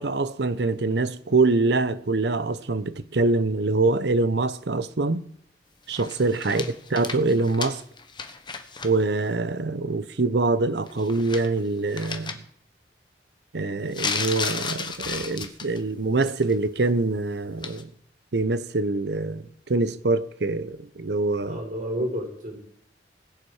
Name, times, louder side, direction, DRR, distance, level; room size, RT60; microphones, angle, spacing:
voice 1, 0.0-5.2 5.9-6.6 6.9-7.8 8.8-12.3 13.5-17.9 18.3-21.6, right 3 dB, 70° right, 0.7 m, -24 dB
sound 1, 5.9-8.9 9.2-9.3 10.9-11.6 11.9-12.3 13.9-15.8 16.2-16.5 17.6-17.8, left 5 dB, 25° left, 1.0 m, -33 dB
voice 2, 21.4-22.6, equal, 50° right, 4.7 m, -30 dB
20.0 x 7.4 x 4.9 m
head